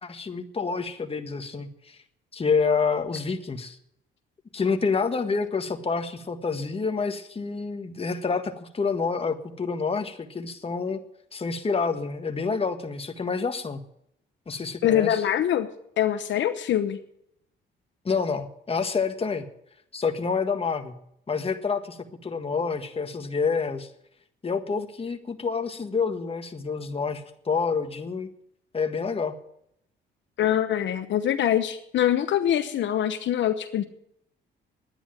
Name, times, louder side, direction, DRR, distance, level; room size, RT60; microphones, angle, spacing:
voice 1, 0.0-2.0 2.3-3.8 4.5-11.0 11.3-13.8 14.5-15.2 18.0-19.5 19.9-20.9 21.3-23.9 24.4-28.3 28.7-29.4, left 5 dB, 30° left, 7 dB, 1.7 m, -28 dB
voice 2, 14.8-15.7 16.0-17.0 30.4-33.8, left 10 dB, 70° left, 9 dB, 1.0 m, -24 dB
11.0 x 10.0 x 9.0 m, 0.72 s
cardioid pair, 90°, 20 cm